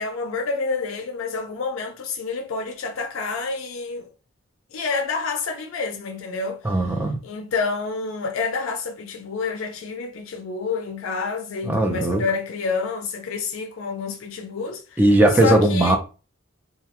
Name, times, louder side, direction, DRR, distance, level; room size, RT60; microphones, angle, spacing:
voice 1, 0.0-4.1 4.7-6.8 7.2-15.0 15.4-16.0, left 4 dB, 80° left, 0.4 m, -28 dB
voice 2, 6.6-7.2 11.7-12.2 15.0-16.0, right 1 dB, 10° right, 0.4 m, -18 dB
2.3 x 2.2 x 2.8 m
head